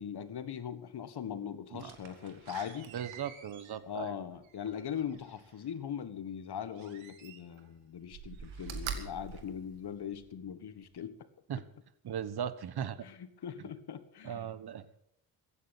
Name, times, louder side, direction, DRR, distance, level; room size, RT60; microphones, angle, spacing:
voice 1, 0.0-2.9 3.8-11.2 13.0-14.5, left 8 dB, 60° left, 12 dB, 1.7 m, -40 dB
Slam, 1.8-5.6 6.7-7.7 8.0-10.3 10.8-10.9, right 7 dB, 90° right, 2.0 m, -45 dB
voice 2, 2.9-4.1 11.5-11.6 12.0-13.0 14.2-14.8, right 8 dB, 55° right, 15 dB, 1.4 m, -38 dB
15.5 x 10.0 x 8.3 m, 0.76 s
cardioid pair, 65°, 45 cm